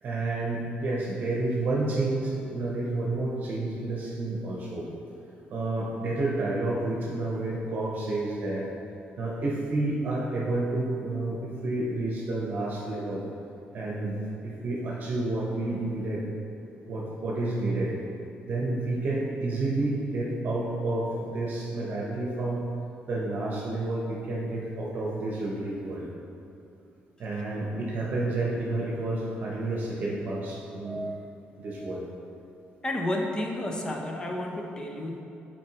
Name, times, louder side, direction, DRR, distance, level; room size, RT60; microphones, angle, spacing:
voice 1, 0.0-4.8 5.5-8.7 9.2-13.2 13.7-16.2 16.9-17.9 18.5-21.1 21.3-22.6 23.1-26.0 27.2-31.3 31.6-32.1, right 2 dB, 55° right, -4 dB, 0.9 m, -30 dB
voice 2, 32.8-35.2, left 1 dB, 20° left, 1 dB, 0.6 m, -31 dB
7.4 x 4.4 x 2.9 m, 2.7 s
cardioid pair, 125°, 4 cm